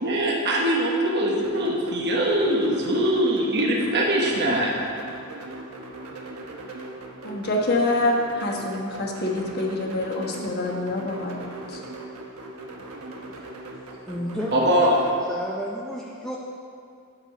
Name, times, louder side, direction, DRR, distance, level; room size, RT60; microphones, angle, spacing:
voice 1, 0.0-4.8 14.5-14.9, right 1 dB, 50° right, -2 dB, 1.1 m, -22 dB
sound 1, 1.4-15.2, right 2 dB, 80° right, 1.1 m, -39 dB
voice 2, 7.2-11.8, left 2 dB, 45° left, 0 dB, 1.2 m, -26 dB
voice 3, 14.1-14.9 15.3-16.4, equal, 5° left, -4 dB, 0.6 m, -31 dB
10.0 x 6.8 x 4.9 m, 2.5 s
head